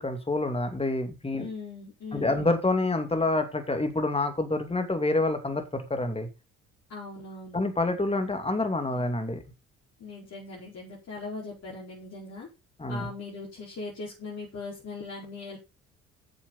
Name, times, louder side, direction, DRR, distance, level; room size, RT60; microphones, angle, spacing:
voice 1, 0.0-1.5 2.1-6.3 7.5-9.4 12.8-13.1, left 2 dB, 20° left, 7 dB, 2.6 m, -27 dB
voice 2, 1.4-2.5 6.9-7.6 10.0-12.5 12.9-15.6, left 3 dB, 50° left, -5 dB, 4.9 m, -39 dB
9.1 x 7.3 x 5.5 m, 0.28 s
hypercardioid pair, 55°, 32 cm